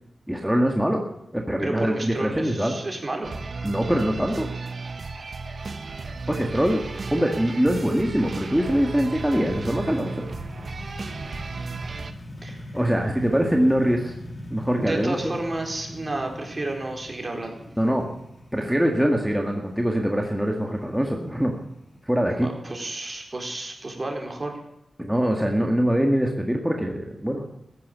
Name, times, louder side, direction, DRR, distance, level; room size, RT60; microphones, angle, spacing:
voice 1, 0.3-1.0 1.3-2.8 3.6-4.5 6.3-6.8 7.1-10.2 12.7-14.1 14.5-15.3 17.8-18.1 18.5-21.5 22.0-22.5 25.0-27.4, equal, 5° right, 1 dB, 1.9 m, -23 dB
voice 2, 1.6-3.3 12.4-12.8 14.8-17.7 22.4-24.6, right 2 dB, 35° right, 2 dB, 4.3 m, -31 dB
sound 1, 3.2-12.1, right 4 dB, 60° right, 1.2 m, -34 dB
sound 2, 4.1-22.9, left 1 dB, 50° left, 3.4 m, -42 dB
15.0 x 10.0 x 8.3 m, 0.85 s
cardioid pair, 65°, 0 cm